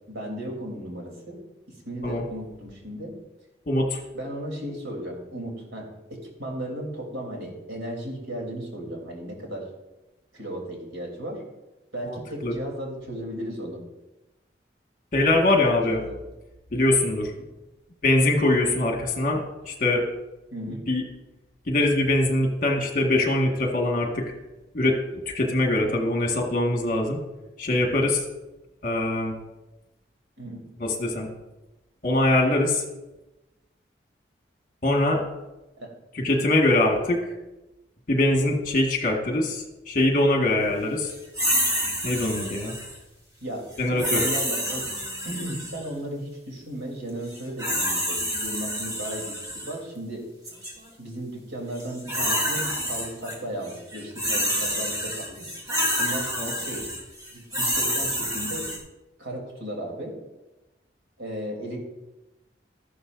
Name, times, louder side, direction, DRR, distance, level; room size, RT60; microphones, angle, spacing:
voice 1, 0.1-1.4 1.9-3.1 4.1-9.7 10.3-11.4 11.9-13.8 15.3-16.0 20.5-20.8 30.4-30.6 35.8-35.9 43.4-44.9 45.2-50.2 51.0-55.5 56.0-56.3 56.5-56.9 57.3-58.7 59.2-60.1 61.2-61.8, right 1 dB, 85° right, -1 dB, 3.3 m, -35 dB
voice 2, 3.7-4.0 12.1-12.6 15.1-16.0 16.7-17.3 18.0-20.1 20.9-21.0 21.7-24.3 24.7-27.2 27.6-28.3 28.8-29.4 30.8-31.3 32.0-32.8 34.8-35.2 36.1-37.3 38.1-41.1 42.0-42.8 43.8-44.3 56.3-56.5, left 1 dB, 45° left, 1 dB, 1.8 m, -23 dB
sound 1, 41.3-43.0 44.0-45.8 47.3-49.7 50.4-50.7 51.8-53.3 53.6-58.8, equal, 20° right, 2.3 m, -28 dB
13.5 x 11.5 x 2.6 m, 1.0 s
head